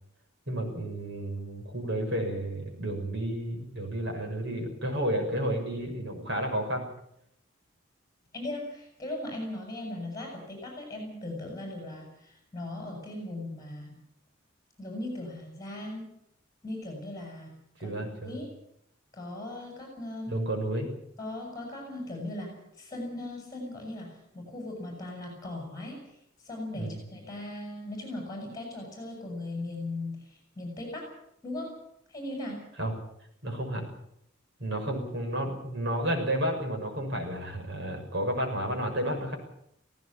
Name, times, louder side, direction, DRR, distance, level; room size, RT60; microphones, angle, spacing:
voice 1, 0.5-6.9 17.8-18.4 20.3-20.9 26.7-27.0 32.8-32.9 33.4-33.9 34.6-39.4, right 1 dB, 60° right, 3 dB, 6.5 m, -31 dB
voice 2, 8.3-13.9 14.8-16.1 16.6-18.5 19.1-20.3 21.2-26.1 26.4-31.1 31.4-31.8 32.1-32.7, left 1 dB, 20° left, 1 dB, 7.7 m, -38 dB
18.0 x 18.0 x 8.8 m, 0.73 s
head